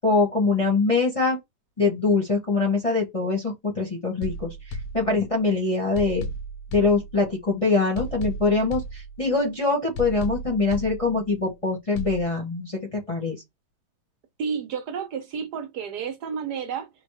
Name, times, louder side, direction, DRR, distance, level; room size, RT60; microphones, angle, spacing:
voice 1, 0.0-1.4 1.8-4.5 4.9-6.2 6.7-13.4, left 3 dB, 25° left, 1.0 m, -23 dB
sound 1, 4.2-5.5 6.0-7.5 8.0-9.5 10.0-11.5 12.0-12.2, equal, 65° left, 1.1 m, -35 dB
voice 2, 14.4-16.9, right 6 dB, 75° right, 1.4 m, -31 dB
4.3 x 2.3 x 4.7 m
omnidirectional pair, 1.8 m